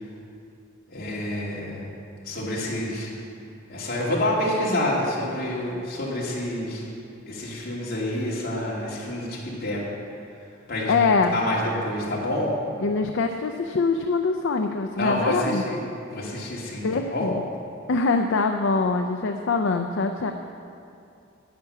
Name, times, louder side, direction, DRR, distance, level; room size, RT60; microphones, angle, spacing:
voice 1, 0.9-1.9 2.2-3.1 3.7-6.8 7.3-9.8 10.7-10.9 11.3-12.5 15.0-17.3, left 1 dB, 50° left, -5 dB, 2.7 m, -28 dB
voice 2, 10.9-11.4 12.8-15.6 16.8-17.4 17.9-20.3, left 4 dB, 65° left, 5 dB, 0.5 m, -23 dB
10.5 x 9.4 x 6.8 m, 2.5 s
head